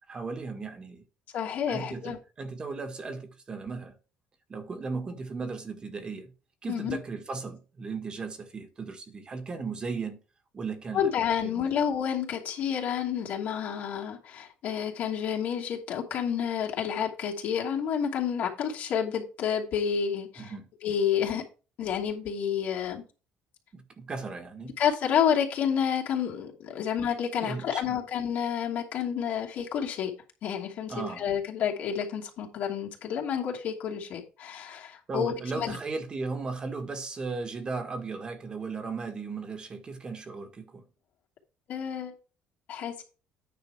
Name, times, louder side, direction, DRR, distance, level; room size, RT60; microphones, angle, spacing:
voice 1, 0.1-1.0 1.7-3.9 4.5-6.3 6.6-10.2 10.5-11.1 11.4-11.7 20.4-20.7 23.7-24.8 27.4-28.0 30.9-31.3 35.1-40.8, right 4 dB, 30° right, 1.6 m, -36 dB
voice 2, 1.3-2.2 6.7-7.0 10.9-20.5 20.8-21.4 21.8-23.0 24.8-30.1 30.4-35.8 41.7-42.1 42.7-43.0, left 8 dB, 65° left, 2.7 m, -29 dB
9.5 x 5.2 x 4.7 m
cardioid pair, 120°, 3 cm